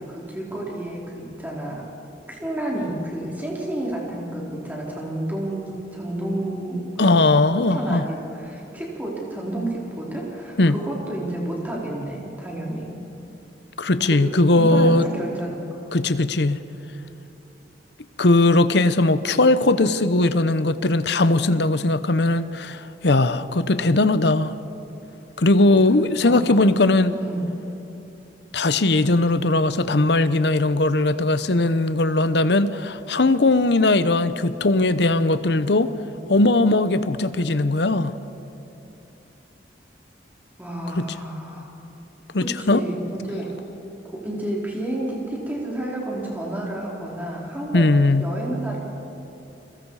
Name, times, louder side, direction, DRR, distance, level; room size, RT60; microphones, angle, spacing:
voice 1, 0.0-1.9 2.3-7.2 7.6-12.9 14.0-15.8 26.2-26.4 27.1-27.4 40.6-41.7 42.4-43.5 44.0-48.8, right 1 dB, 10° right, -4 dB, 4.3 m, -30 dB
voice 2, 7.0-8.1 10.6-10.8 13.8-15.1 15.9-16.6 18.2-24.5 25.4-27.1 28.5-35.9 36.3-38.1 40.9-41.0 42.3-42.8 47.7-48.3, left 2 dB, 65° left, 13 dB, 0.8 m, -19 dB
30.0 x 22.5 x 4.9 m, 2.8 s
head